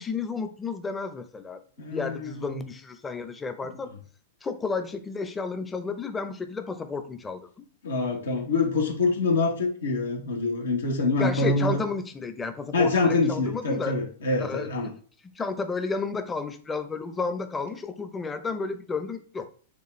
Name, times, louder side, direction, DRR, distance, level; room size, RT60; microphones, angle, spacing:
voice 1, 0.0-1.6 1.9-3.9 4.4-7.7 11.2-13.9 14.4-14.7 15.4-19.5, left 4 dB, 15° left, 9 dB, 0.6 m, -32 dB
voice 2, 1.8-2.6 3.6-3.7 7.8-11.8 12.7-14.9, left 3 dB, 85° left, 1 dB, 1.1 m, -25 dB
6.7 x 2.4 x 3.2 m, 0.43 s
hypercardioid pair, 115°, 0 cm